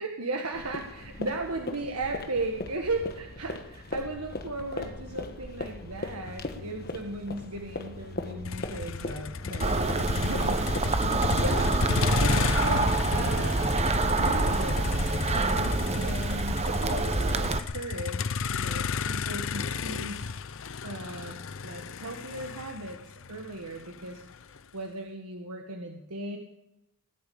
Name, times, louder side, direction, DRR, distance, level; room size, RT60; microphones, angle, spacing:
voice 1, 0.0-11.8 12.2-13.8 14.2-14.9 15.3-20.3 20.8-23.0 23.3-24.2 24.7-26.4, right 2 dB, 90° right, 3 dB, 1.5 m, -36 dB
sound 1, 0.5-10.8, left 2 dB, 45° left, 1.3 m, -39 dB
Motor vehicle (road), 8.4-24.6, left 5 dB, 60° left, 0.6 m, -32 dB
sound 2, 9.6-17.6, right 2 dB, 30° right, 0.8 m, -26 dB
19.0 x 8.5 x 8.6 m, 0.89 s
head